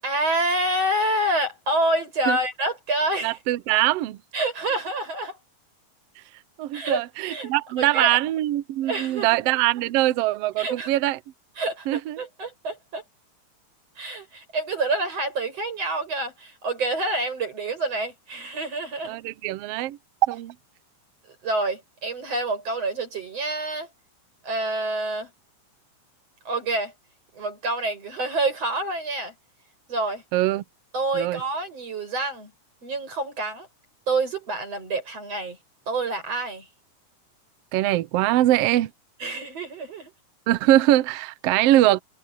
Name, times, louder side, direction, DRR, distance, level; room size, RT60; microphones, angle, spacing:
voice 1, 0.0-3.4 4.3-5.4 6.7-7.5 7.8-8.2 8.9-9.4 10.6-10.9 11.6-13.0 14.0-19.2 21.4-23.9 24.4-25.3 26.5-26.9 27.3-29.3 29.9-30.2 30.9-32.5 32.8-33.7 34.1-35.6 35.9-36.7 39.2-40.1, right 2 dB, 50° right, 9.0 m, -27 dB
voice 2, 3.2-4.2 6.6-11.2 11.9-12.2 19.0-20.5 30.3-30.6 31.1-31.4 37.7-38.9 40.5-42.0, right 15 dB, 90° right, 1.3 m, -22 dB
omnidirectional pair, 3.7 m